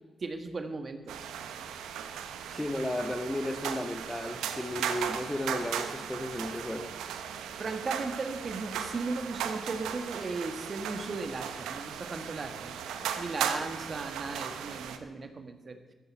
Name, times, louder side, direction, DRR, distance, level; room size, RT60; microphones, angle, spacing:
voice 1, 0.2-1.3 7.6-12.7 13.2-15.8, right 3 dB, 50° right, 7 dB, 1.6 m, -36 dB
sound 1, 1.1-15.0, right 8 dB, 85° right, 0.9 m, -37 dB
voice 2, 2.5-6.9, left 1 dB, 15° left, 7 dB, 1.5 m, -34 dB
14.5 x 13.5 x 4.7 m, 1.3 s
supercardioid pair, 45°, 0 cm